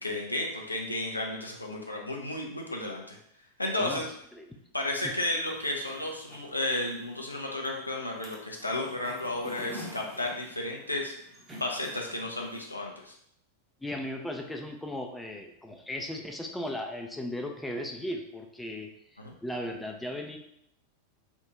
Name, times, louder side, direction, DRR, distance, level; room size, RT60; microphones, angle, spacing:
voice 1, 0.0-3.2 3.6-4.1 4.7-11.1 11.6-13.1 19.2-19.3, left 1 dB, 85° left, -1 dB, 0.6 m, -33 dB
sound 1, 5.3-12.6, equal, 15° right, 0.8 m, -47 dB
voice 2, 13.8-18.9 19.4-20.4, left 1 dB, 5° left, 2 dB, 0.4 m, -36 dB
3.5 x 2.4 x 2.9 m, 0.73 s
figure-of-eight pair, 90°, 0 cm